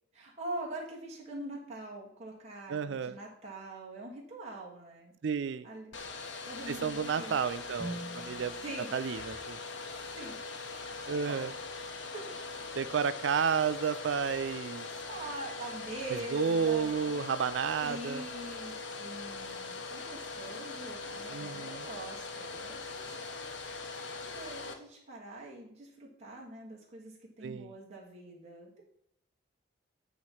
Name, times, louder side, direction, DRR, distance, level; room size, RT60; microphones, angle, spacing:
voice 1, 0.1-5.1 5.6-6.1 6.4-7.4 8.6-8.9 10.0-10.4 10.9-11.4 11.8-12.2 15.0-17.5 17.8-23.1 23.9-28.8, right 2 dB, 35° right, -4 dB, 1.6 m, -44 dB
voice 2, 2.7-3.2 5.2-5.7 6.7-8.6 8.9-9.6 11.1-11.5 12.8-14.9 16.1-18.2 21.3-21.8 27.4-27.7, right 6 dB, 75° right, 13 dB, 0.4 m, -31 dB
Domestic sounds home sounds, 5.9-24.7, left 3 dB, 80° left, 1.0 m, -41 dB
sound 1, 7.8-11.8, right 2 dB, 15° left, 1.4 m, -48 dB
9.1 x 3.1 x 5.7 m, 0.75 s
head